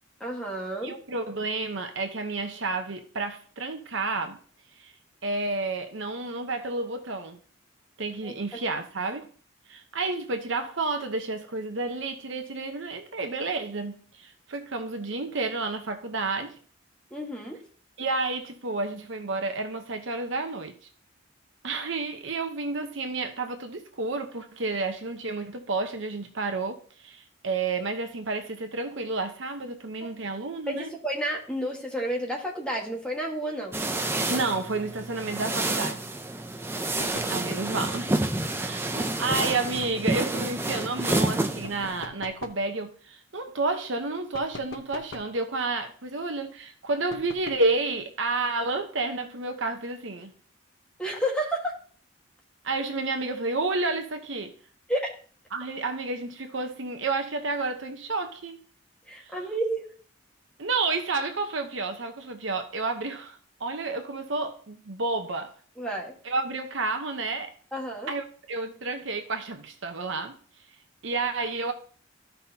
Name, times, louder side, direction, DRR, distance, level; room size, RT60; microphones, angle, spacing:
voice 1, 0.2-0.9 8.2-8.6 17.1-17.6 30.7-33.8 51.0-51.8 54.9-55.2 59.1-59.9 65.8-66.1 67.7-68.1, right 1 dB, 5° left, 1.5 m, -31 dB
voice 2, 0.8-4.4 4.8-4.9 5.2-7.4 8.0-9.3 9.7-16.5 18.0-20.8 21.6-30.9 34.3-36.1 37.3-38.2 38.6-50.3 52.6-54.6 55.5-58.6 59.2-59.4 60.6-65.5 66.2-67.5 68.1-70.4 71.0-71.7, right 3 dB, 65° right, 0.9 m, -30 dB
sound 1, 33.7-42.0, right 2 dB, 10° right, 0.4 m, -29 dB
sound 2, 37.0-37.4 39.3-40.1 41.6-42.7 44.3-45.4 47.1-47.7, left 3 dB, 65° left, 1.0 m, -43 dB
13.5 x 5.6 x 2.8 m
head